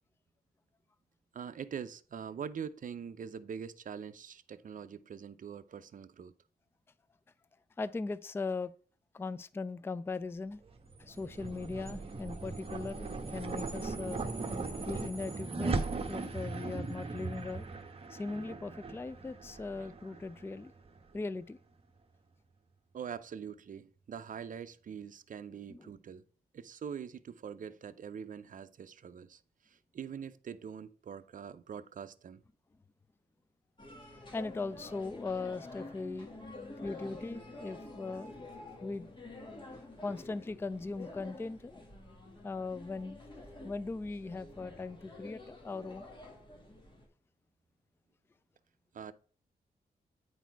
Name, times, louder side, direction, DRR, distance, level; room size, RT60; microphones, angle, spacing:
voice 1, 1.3-6.3 22.9-26.2 26.5-29.4 29.7-32.4 48.9-49.1, right 7 dB, 55° right, 0.5 m, -43 dB
voice 2, 7.8-8.7 9.1-10.6 11.0-14.2 14.9-15.7 16.1-17.7 18.1-20.7 21.1-21.6 25.7-25.9 34.3-36.3 36.8-38.3 38.8-39.1 39.5-41.8 42.4-46.1, left 3 dB, 15° left, 0.3 m, -39 dB
sound 1, 10.7-21.2, right 3 dB, 35° right, 1.0 m, -39 dB
sound 2, 33.8-47.1, left 2 dB, 30° left, 1.7 m, -49 dB
9.2 x 4.2 x 4.6 m
wide cardioid pair, 105°, 16 cm